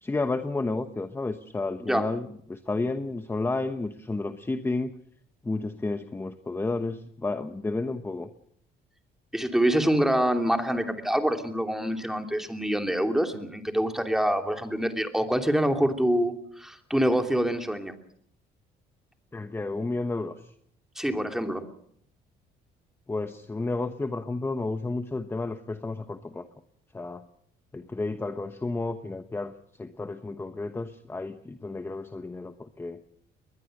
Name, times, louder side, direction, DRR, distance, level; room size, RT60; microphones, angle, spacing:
voice 1, 0.0-4.9 5.4-8.3 19.3-20.5 23.1-26.5 26.9-27.2 27.7-29.5 29.8-33.0, left 3 dB, 15° left, 9 dB, 1.1 m, -31 dB
voice 2, 9.3-17.9 21.0-21.7, equal, ahead, 5 dB, 2.9 m, -26 dB
22.0 x 21.0 x 6.6 m, 0.68 s
cardioid pair, 110°, 17 cm